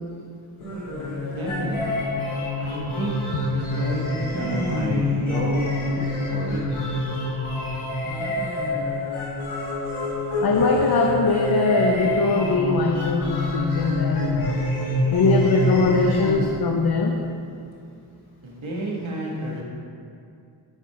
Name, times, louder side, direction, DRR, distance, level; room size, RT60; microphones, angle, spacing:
sound 1, 0.6-16.4, left 2 dB, 90° left, 1.8 m, -26 dB
voice 1, 1.2-2.0 2.6-3.1 3.5-6.0 6.3-7.0 18.4-19.6, right 1 dB, 75° right, -4 dB, 1.7 m, -30 dB
voice 2, 10.4-14.6 15.1-17.2, left 3 dB, 50° left, 2 dB, 0.6 m, -21 dB
7.7 x 4.6 x 4.7 m, 2.5 s
cardioid pair, 50°, 47 cm